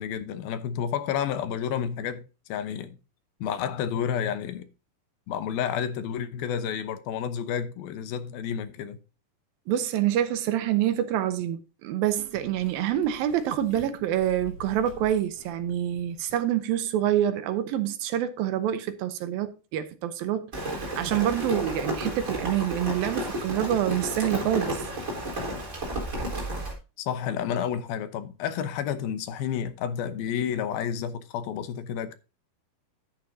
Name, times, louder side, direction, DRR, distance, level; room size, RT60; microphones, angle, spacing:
voice 1, 0.0-3.0 3.4-4.7 5.3-9.0 27.0-32.2, left 8 dB, 80° left, 2.7 m, -30 dB
voice 2, 9.7-24.8, right 11 dB, 75° right, 2.6 m, -27 dB
sound 1, 12.2-16.7 17.0-17.1, left 3 dB, 45° left, 3.2 m, -48 dB
Rain, 20.5-26.7, right 1 dB, 20° right, 4.0 m, -32 dB
11.0 x 9.3 x 2.7 m
omnidirectional pair, 4.4 m